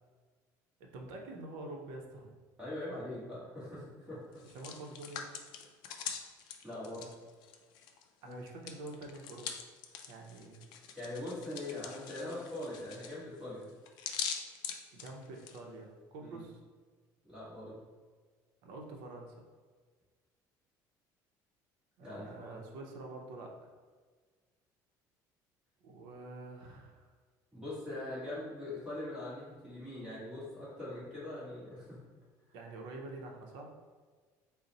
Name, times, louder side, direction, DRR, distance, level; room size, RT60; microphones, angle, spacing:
voice 1, 0.8-2.4 4.4-5.3 8.2-9.5 10.1-10.6 14.9-16.6 18.6-19.5 22.0-23.7 25.8-27.1 32.5-33.7, right 2 dB, 80° right, 1 dB, 0.6 m, -47 dB
voice 2, 2.6-4.2 6.6-7.1 8.2-8.4 10.9-13.7 16.2-16.4 17.2-17.8 22.0-22.6 27.5-32.0, left 1 dB, 10° right, -10 dB, 1.3 m, -42 dB
Hands, 4.3-8.0 8.3-15.6, left 7 dB, 65° left, 0.4 m, -43 dB
3.9 x 2.0 x 4.0 m, 1.5 s
cardioid pair, 165°, 8 cm